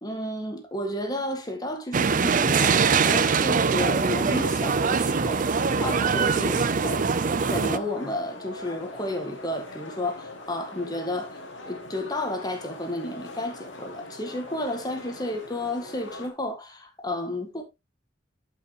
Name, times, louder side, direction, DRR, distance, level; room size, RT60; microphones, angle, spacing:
voice 1, 0.0-11.4 11.7-17.6, left 1 dB, 20° left, 1.9 m, -32 dB
sound 1, 1.9-7.8, right 5 dB, 45° right, 0.5 m, -23 dB
sound 2, 2.0-16.3, left 1 dB, 85° left, 2.0 m, -41 dB
12.5 x 5.6 x 3.0 m
head